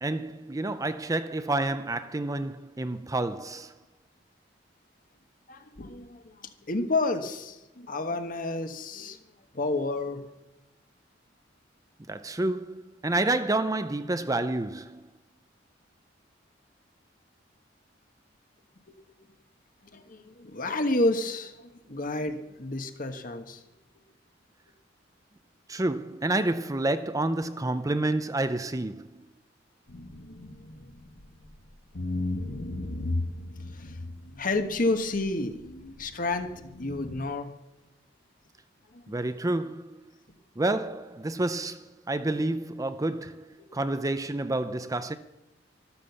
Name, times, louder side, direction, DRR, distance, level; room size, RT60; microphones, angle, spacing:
voice 1, 0.0-3.8 12.1-15.1 25.7-29.3 39.1-40.0 40.6-45.2, right 2 dB, 20° right, 0.6 m, -29 dB
voice 2, 5.5-9.2 9.5-10.3 19.9-23.6 32.1-32.7 33.7-34.0 34.4-35.6 36.0-36.5 36.8-37.5 38.9-39.1 43.6-43.7, left 2 dB, 45° left, 1.4 m, -30 dB
sound 1, 29.9-31.6 32.0-37.2, left 2 dB, 80° left, 1.5 m, -36 dB
13.0 x 12.5 x 7.0 m
head